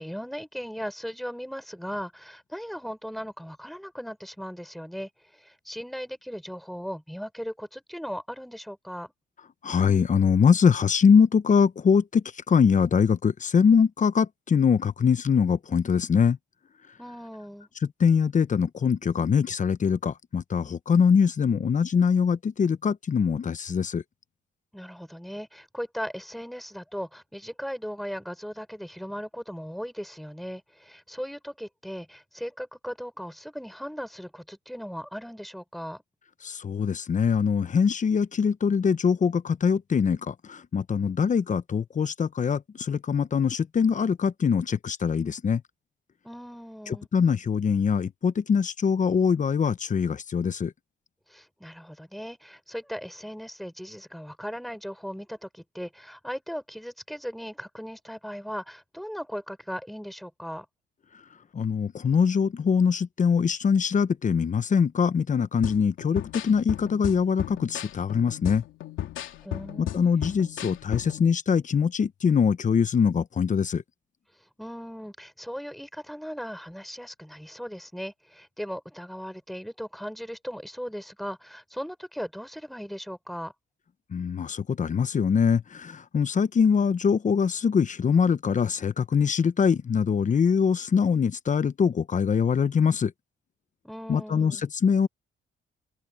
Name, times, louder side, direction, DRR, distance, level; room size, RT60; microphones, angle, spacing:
voice 1, 0.0-9.1 17.0-17.7 24.7-36.0 46.2-47.1 51.3-60.7 69.4-70.2 74.6-83.5 93.8-94.6, equal, ahead, 6.5 m, -38 dB
voice 2, 9.6-16.4 18.0-24.0 36.4-45.6 46.9-50.7 61.5-68.6 69.8-73.8 84.1-93.1 94.1-95.1, left 6 dB, 40° left, 1.0 m, -23 dB
sound 1, 65.6-71.3, left 12 dB, 80° left, 2.8 m, -35 dB
open air
cardioid pair, 90°, 20 cm